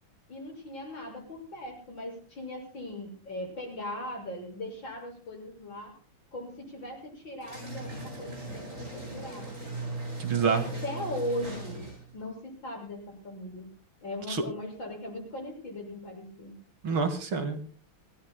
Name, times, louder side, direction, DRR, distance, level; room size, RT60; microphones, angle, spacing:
voice 1, 0.3-6.0 6.3-9.5 10.4-11.9 12.1-13.7 14.0-16.5, left 1 dB, 55° left, 2 dB, 7.2 m, -39 dB
sound 1, 7.4-12.2, right 2 dB, 35° right, 8.2 m, -39 dB
voice 2, 10.2-10.6 14.3-14.4 16.8-17.6, right 5 dB, 65° right, 8 dB, 2.7 m, -27 dB
26.0 x 17.0 x 2.2 m, 0.40 s
omnidirectional pair, 2.4 m